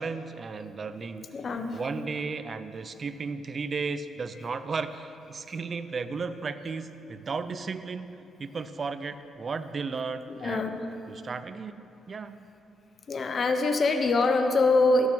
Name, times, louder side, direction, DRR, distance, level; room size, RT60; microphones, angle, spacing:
voice 1, 0.0-1.3 1.7-10.6 11.1-11.8 12.1-12.4, right 4 dB, 40° right, 12 dB, 0.6 m, -34 dB
voice 2, 1.3-2.1 10.3-10.8 13.1-15.1, left 3 dB, 45° left, 7 dB, 0.9 m, -24 dB
12.0 x 7.2 x 6.0 m, 2.9 s
cardioid pair, 90°, 0 cm